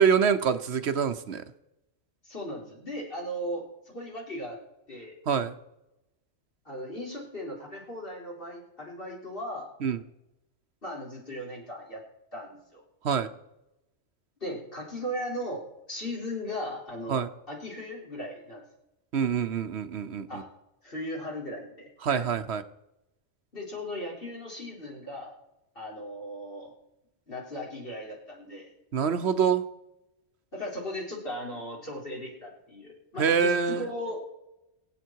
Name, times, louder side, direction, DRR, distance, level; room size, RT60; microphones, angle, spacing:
voice 1, 0.0-1.4 5.3-5.5 9.8-10.0 13.0-13.3 17.1-17.3 19.1-20.4 22.0-22.6 28.9-29.6 33.2-33.9, right 7 dB, 65° right, 11 dB, 1.1 m, -25 dB
voice 2, 2.2-4.6 4.9-5.2 6.6-9.7 10.8-12.0 12.3-12.8 14.4-18.6 20.3-20.5 20.8-22.3 23.5-25.4 25.8-26.7 27.3-28.7 30.5-34.2, equal, 50° left, -2 dB, 4.1 m, -37 dB
24.0 x 8.5 x 4.7 m, 0.89 s
omnidirectional pair, 1.2 m